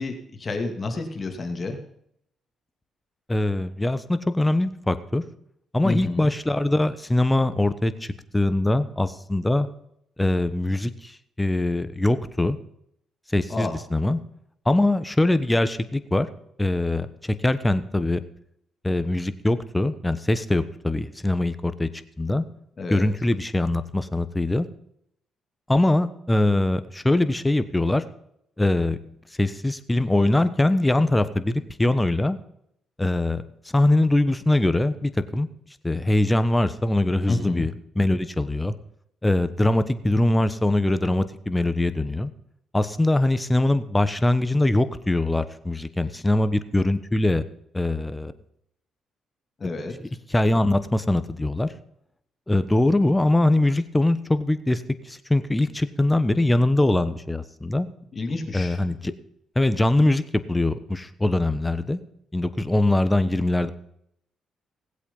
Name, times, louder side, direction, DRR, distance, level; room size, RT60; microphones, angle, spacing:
voice 1, 0.0-1.8 5.8-6.3 13.5-13.8 22.8-23.1 37.3-37.7 49.6-49.9 58.1-58.8, left 3 dB, 35° left, 5 dB, 2.5 m, -29 dB
voice 2, 3.3-5.2 5.7-9.7 10.2-12.6 13.3-14.2 14.7-16.3 16.6-18.2 18.8-21.9 22.2-22.4 22.9-24.7 25.7-28.0 28.6-29.0 29.4-32.4 33.0-33.4 33.7-35.5 35.8-38.7 39.2-42.3 42.7-47.4 47.7-48.3 50.3-51.7 52.5-57.9 58.5-59.1 59.5-62.0 62.3-63.7, left 1 dB, 10° left, 12 dB, 1.1 m, -22 dB
18.5 x 8.3 x 5.5 m, 0.71 s
cardioid pair, 90°, 0 cm